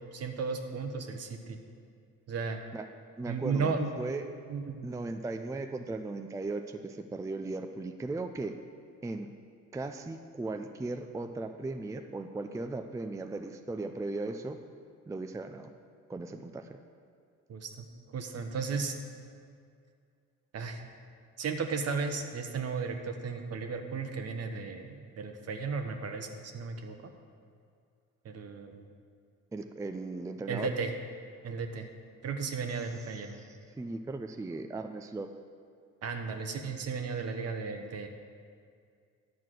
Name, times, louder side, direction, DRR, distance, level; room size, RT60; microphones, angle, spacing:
voice 1, 0.1-1.6 2.3-2.6 3.3-3.9 4.5-4.9 17.5-18.9 20.5-20.8 21.4-27.0 28.2-28.9 30.5-30.9 31.4-31.9 32.2-33.4 36.0-38.1, right 5 dB, 55° right, 6 dB, 1.0 m, -35 dB
voice 2, 3.2-4.2 4.8-8.5 9.0-9.3 9.7-14.6 15.1-15.7 16.1-16.7 29.5-30.7 33.1-35.3, right 2 dB, 10° right, 7 dB, 0.4 m, -37 dB
10.5 x 4.7 x 7.6 m, 2.2 s
cardioid pair, 90°, 30 cm